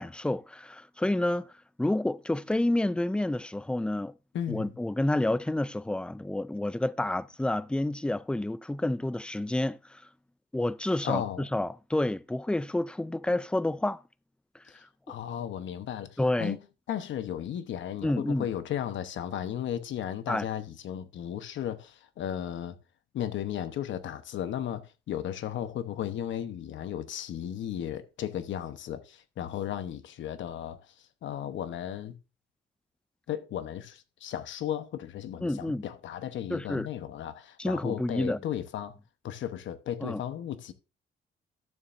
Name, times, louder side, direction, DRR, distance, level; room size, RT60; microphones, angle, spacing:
voice 1, 0.0-1.5 1.8-4.1 4.5-10.0 10.5-14.0 16.2-16.6 18.0-18.5 20.3-20.4 35.4-35.8 36.5-36.9 37.6-38.4 40.0-40.2, left 1 dB, 5° left, 0.4 m, -29 dB
voice 2, 4.3-4.8 11.0-11.5 14.7-16.6 16.9-22.8 23.1-30.9 31.2-32.2 33.3-38.9 39.2-40.7, left 10 dB, 70° left, 1.0 m, -35 dB
12.0 x 7.0 x 2.6 m
cardioid pair, 90°, 20 cm